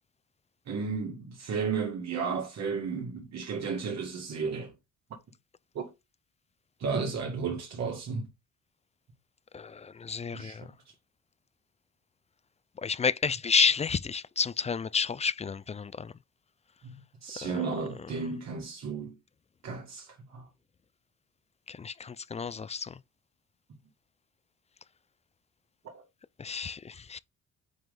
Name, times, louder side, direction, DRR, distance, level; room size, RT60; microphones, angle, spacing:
voice 1, 0.7-4.7 5.8-5.9 6.8-8.3 10.3-10.7 16.8-19.1 19.6-20.5 25.8-26.0, right 5 dB, 60° right, 1.9 m, -33 dB
voice 2, 9.5-10.7 12.8-16.1 17.4-17.5 21.7-22.9 26.4-27.2, left 5 dB, 20° left, 0.4 m, -30 dB
9.2 x 3.1 x 3.9 m
cardioid pair, 90°, 30 cm